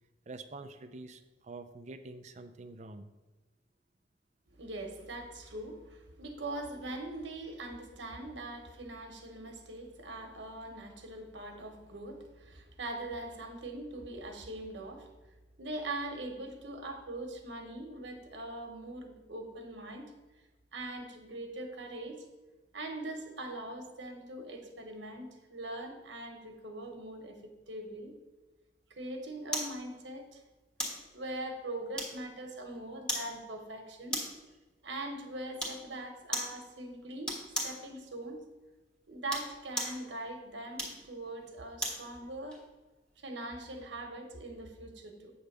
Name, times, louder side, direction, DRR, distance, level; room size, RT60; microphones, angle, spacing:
voice 1, 0.3-3.1, right 3 dB, 40° right, 9 dB, 0.5 m, -46 dB
voice 2, 4.6-15.1 15.6-20.1 20.7-22.2 22.7-28.1 28.9-30.4 31.1-34.2 34.8-37.3 37.6-38.4 39.1-42.6 43.2-45.3, right 2 dB, 90° right, 4 dB, 1.2 m, -42 dB
sound 1, 29.5-29.8 30.8-31.0 32.0-32.4 33.1-33.3 34.1-34.4 35.6-35.8 36.3-36.6 37.2-37.8 39.1-40.0 40.7-42.0 42.5-42.6, equal, 5° left, 1.5 m, -36 dB
8.6 x 3.4 x 6.6 m, 1.2 s
head